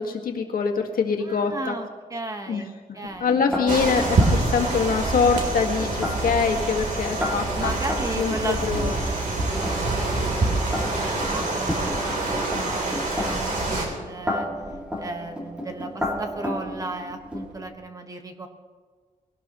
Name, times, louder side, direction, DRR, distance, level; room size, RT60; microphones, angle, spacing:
voice 1, 0.0-1.7 2.5-2.6 2.9-7.7 8.2-8.9, left 5 dB, 85° left, 2 dB, 1.8 m, -24 dB
voice 2, 1.2-3.8 7.5-9.2 9.5-14.5 15.0-18.5, right 2 dB, 25° right, 5 dB, 1.3 m, -35 dB
sound 1, 3.1-17.7, left 1 dB, 10° right, 2.4 m, -34 dB
sound 2, 3.7-13.9, right 2 dB, 65° right, 3.5 m, -26 dB
21.5 x 18.0 x 3.1 m, 1.5 s
wide cardioid pair, 170°, 14 cm